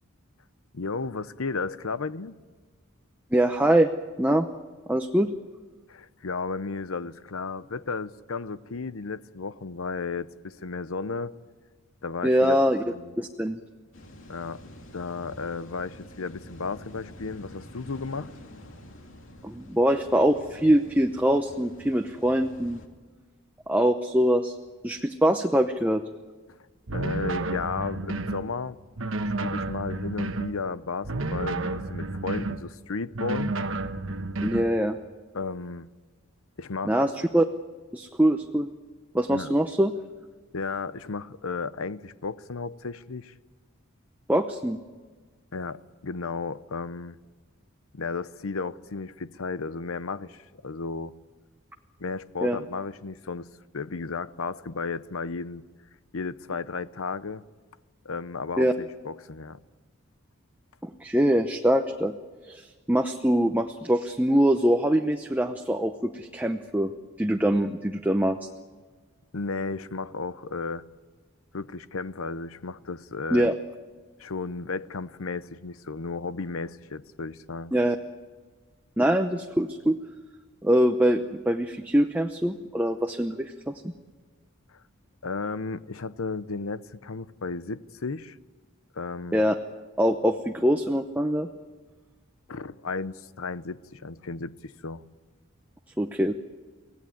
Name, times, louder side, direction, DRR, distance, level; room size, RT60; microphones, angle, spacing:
voice 1, 0.7-2.4 5.9-11.3 12.0-12.6 12.9-13.2 14.3-14.6 14.9-18.3 26.9-28.8 29.2-33.6 35.3-35.9 36.6-37.0 39.3-39.5 40.5-43.3 45.5-47.2 47.9-51.1 52.0-53.5 53.7-55.6 56.1-57.4 58.0-59.6 69.3-70.8 71.5-73.5 74.2-77.7 84.7-84.8 85.2-88.4 88.9-89.4 92.5-95.0, left 4 dB, 80° left, 0.8 m, -34 dB
voice 2, 3.3-3.9 4.2-4.5 4.9-5.3 12.2-12.8 13.2-13.6 19.4-22.8 23.7-24.6 24.8-26.0 34.4-35.0 36.8-37.4 37.9-38.7 39.1-39.9 44.3-44.8 52.4-52.6 58.6-58.7 60.8-62.1 62.5-66.9 67.2-68.4 73.3-73.5 77.7-78.0 79.0-80.0 80.6-83.9 89.3-89.5 90.0-91.5 96.0-96.3, equal, 10° right, 0.7 m, -23 dB
sound 1, 13.9-22.9, left 1 dB, 65° left, 2.6 m, -48 dB
sound 2, 26.9-28.4 29.0-30.5 31.0-32.6 33.1-34.7, right 2 dB, 70° right, 1.2 m, -31 dB
24.5 x 17.5 x 9.4 m
head